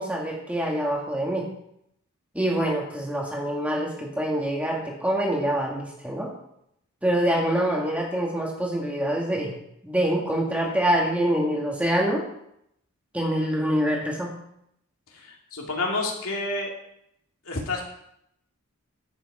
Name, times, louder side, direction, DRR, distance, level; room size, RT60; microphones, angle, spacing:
voice 1, 0.0-1.5 2.3-6.3 7.0-9.6 9.8-12.2 13.1-14.3, right 1 dB, 5° right, -1 dB, 1.8 m, -25 dB
voice 2, 15.1-16.7 17.5-17.8, left 2 dB, 75° left, -1 dB, 2.6 m, -29 dB
10.5 x 8.3 x 4.9 m, 0.75 s
head